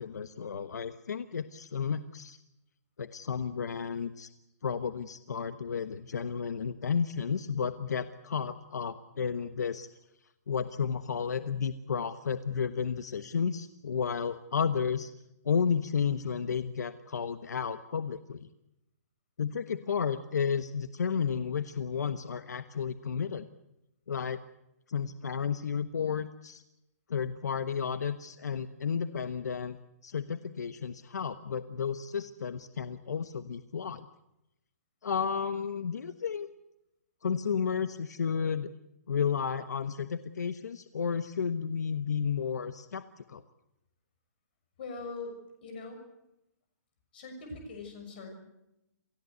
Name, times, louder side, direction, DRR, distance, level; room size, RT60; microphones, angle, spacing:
voice 1, 0.0-2.4 3.0-4.3 4.6-9.9 10.5-15.1 15.4-18.5 19.4-23.5 24.1-24.4 24.9-26.6 27.1-29.8 30.0-34.1 35.0-36.5 37.2-38.7 39.1-43.4, left 6 dB, 75° left, 11 dB, 1.2 m, -32 dB
voice 2, 44.8-46.0 47.1-48.3, left 3 dB, 35° left, 5 dB, 6.5 m, -42 dB
28.5 x 17.0 x 8.1 m, 0.89 s
hypercardioid pair, 180°, 9 cm